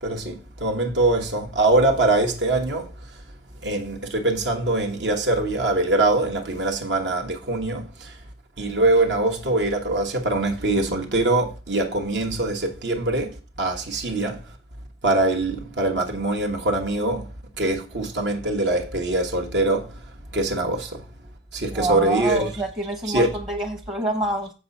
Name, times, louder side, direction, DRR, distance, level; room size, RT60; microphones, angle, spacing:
voice 1, 0.0-2.9 3.6-8.2 8.6-14.4 15.0-17.3 17.6-19.9 20.3-21.0 21.5-22.6 23.0-23.3, right 2 dB, 75° right, 1.2 m, -23 dB
voice 2, 21.7-24.5, right 2 dB, 25° right, 0.8 m, -26 dB
7.7 x 4.9 x 5.4 m
head